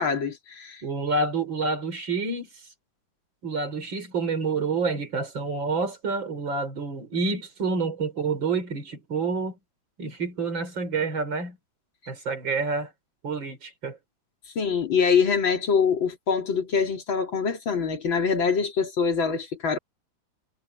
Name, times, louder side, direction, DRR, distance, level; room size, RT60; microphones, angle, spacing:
voice 1, 0.0-0.8 14.6-19.8, left 6 dB, 85° left, 3.6 m, -24 dB
voice 2, 0.8-2.5 3.4-9.6 10.0-11.6 12.1-12.9 13.2-14.0, right 4 dB, 75° right, 4.7 m, -28 dB
omnidirectional pair, 2.1 m